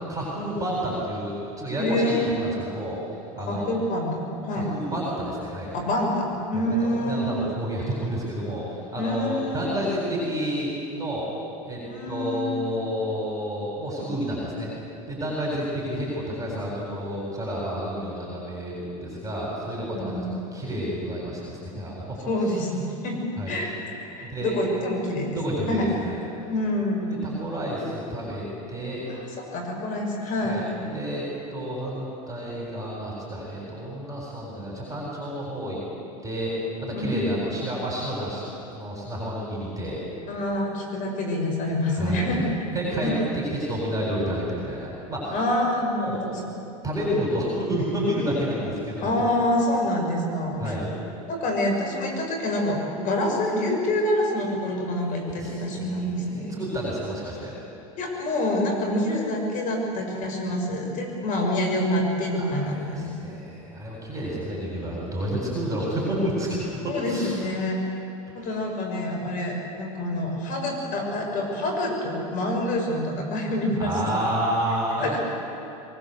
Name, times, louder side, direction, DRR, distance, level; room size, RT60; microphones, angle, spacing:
voice 1, 0.1-3.0 3.3-3.8 4.5-5.7 6.5-11.3 11.6-14.7 15.1-22.0 23.4-23.5 24.2-24.6 25.3-26.2 27.0-29.0 30.4-31.3 31.5-35.8 36.2-36.5 36.8-38.4 38.7-40.0 41.9-42.4 42.7-45.4 46.0-46.2 46.8-49.3 50.6-50.9 55.0-56.0 56.3-57.5 62.3-66.6 66.8-67.4 68.3-68.6 73.8-75.2, equal, 20° right, -4 dB, 7.8 m, -30 dB
voice 2, 1.8-2.4 3.5-4.7 5.7-7.3 9.0-9.9 11.8-12.9 19.9-20.5 22.2-23.2 23.5-23.8 24.2-25.9 26.5-27.0 29.1-30.6 36.9-37.3 40.3-42.7 43.0-43.1 45.3-46.4 49.0-50.8 51.3-56.6 58.0-63.4 66.8-67.8 68.3-74.2 75.0-75.2, left 1 dB, 45° left, 2 dB, 6.9 m, -27 dB
23.5 x 20.5 x 8.2 m, 2.7 s
hypercardioid pair, 95°, 18 cm